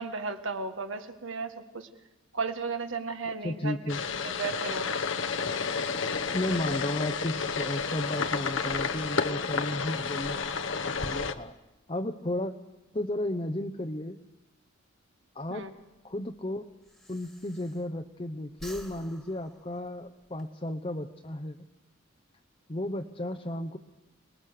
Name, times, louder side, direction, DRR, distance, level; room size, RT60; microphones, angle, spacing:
voice 1, 0.0-1.9 2.3-3.8 4.1-4.9 15.5-15.7, right 4 dB, 65° right, 7 dB, 1.8 m, -34 dB
voice 2, 3.3-4.0 6.3-10.4 10.8-11.5 11.9-12.5 12.9-14.2 15.3-15.7 16.0-16.6 17.1-21.6 22.7-23.8, left 1 dB, 25° left, 3 dB, 0.9 m, -33 dB
sound 1, 3.9-11.3, left 5 dB, 65° left, 1.1 m, -31 dB
Breathing, 15.7-18.2 18.5-20.5, equal, ahead, 1.9 m, -51 dB
28.0 x 20.0 x 6.7 m, 0.97 s
head